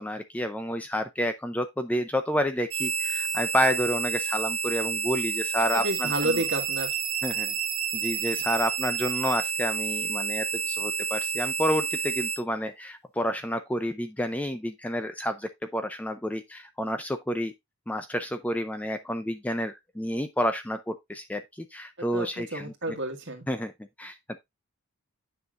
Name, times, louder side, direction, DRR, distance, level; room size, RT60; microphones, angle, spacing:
voice 1, 0.0-6.4 7.2-7.5 7.9-17.5 17.9-22.7 23.5-23.7 24.0-24.4, equal, 5° left, 0.4 m, -29 dB
sound 1, 2.7-12.4, right 6 dB, 75° right, 1.6 m, -30 dB
voice 2, 5.7-6.9 22.1-23.5, right 1 dB, 55° right, 1.9 m, -30 dB
9.6 x 5.7 x 2.5 m
head